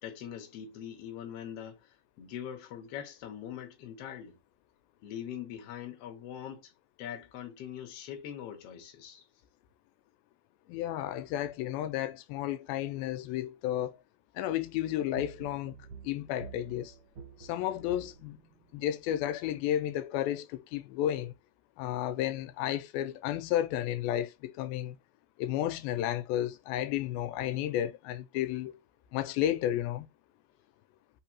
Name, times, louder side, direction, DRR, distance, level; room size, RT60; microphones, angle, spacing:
voice 1, 0.0-4.4 5.0-6.7 7.0-9.2, left 9 dB, 60° left, 1.7 m, -42 dB
voice 2, 10.7-14.0 14.4-15.8 16.0-16.9 17.4-18.4 18.7-21.3 21.8-25.0 25.4-28.8 29.1-30.1, left 12 dB, 85° left, 2.4 m, -32 dB
sound 1, 14.9-18.9, right 5 dB, 65° right, 1.4 m, -49 dB
5.3 x 3.2 x 2.9 m
omnidirectional pair, 4.2 m